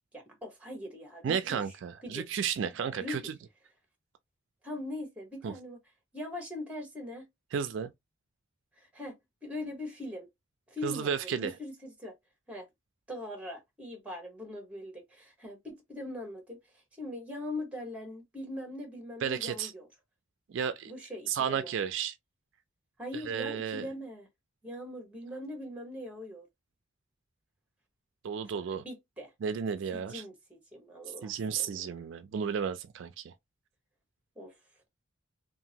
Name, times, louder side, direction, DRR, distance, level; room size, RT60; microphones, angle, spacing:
voice 1, 0.1-1.6 2.0-2.3 3.0-3.3 4.6-5.8 6.1-7.2 8.8-10.3 10.7-12.1 12.5-12.7 13.1-16.6 17.0-19.9 20.9-21.7 23.0-24.3 24.6-26.5 28.4-29.3 29.9-31.9 34.4-34.6, left 1 dB, 5° right, 1.1 m, -41 dB
voice 2, 1.2-3.3 5.4-5.5 7.5-7.9 10.8-11.5 19.2-19.7 20.5-20.9 21.3-22.1 23.3-23.9 28.2-28.8 29.4-30.2 31.1-33.3, right 7 dB, 65° right, 0.3 m, -33 dB
2.8 x 2.5 x 2.7 m
head